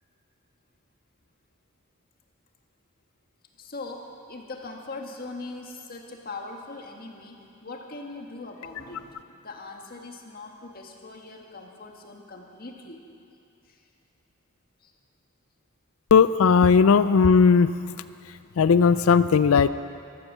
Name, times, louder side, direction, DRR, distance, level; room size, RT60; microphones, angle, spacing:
voice 1, 3.6-13.0 13.7-13.8 14.8-14.9, left 3 dB, 45° left, 2 dB, 1.6 m, -41 dB
voice 2, 16.1-17.7 18.6-19.7, left 5 dB, 85° left, 14 dB, 0.4 m, -17 dB
13.5 x 13.0 x 7.3 m, 2.5 s
head